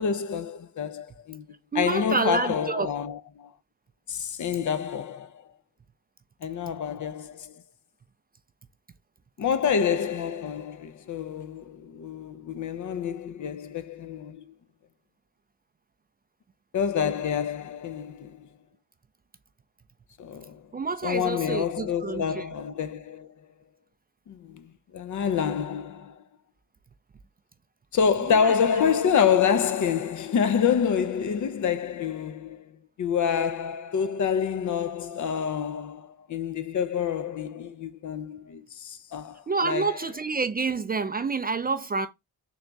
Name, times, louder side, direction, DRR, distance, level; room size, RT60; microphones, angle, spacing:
voice 1, 0.0-1.5 1.7-3.5 4.1-5.5 6.4-7.5 9.4-14.5 16.7-18.5 20.2-20.6 21.0-23.3 24.3-26.2 27.9-40.1, left 7 dB, 50° left, 0.6 m, -27 dB
voice 2, 1.7-2.9 20.7-22.4 28.3-28.5 39.5-42.1, right 4 dB, 25° right, 0.4 m, -28 dB
3.8 x 2.9 x 3.4 m
supercardioid pair, 65°, 40 cm